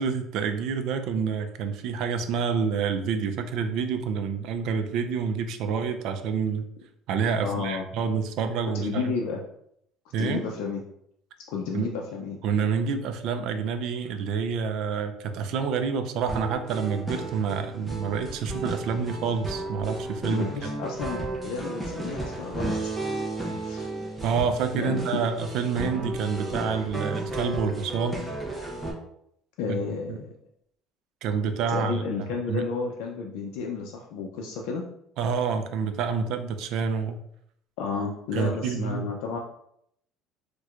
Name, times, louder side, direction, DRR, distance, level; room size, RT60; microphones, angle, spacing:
voice 1, 0.0-6.7 7.1-9.1 10.1-10.5 11.7-11.9 12.4-20.4 24.2-28.2 30.1-30.2 31.2-32.0 32.5-32.6 35.2-37.2 38.3-39.1, right 6 dB, 55° right, 8 dB, 0.3 m, -28 dB
voice 2, 7.4-7.9 8.7-9.4 10.2-10.8 11.5-12.4 20.3-22.9 23.6-23.9 24.8-25.2 29.6-30.3 31.7-34.8 37.8-39.4, left 5 dB, 80° left, 0 dB, 0.4 m, -32 dB
sound 1, 16.3-28.9, right 2 dB, 5° right, 0.6 m, -33 dB
4.4 x 2.2 x 2.4 m, 0.72 s
cardioid pair, 160°, 0 cm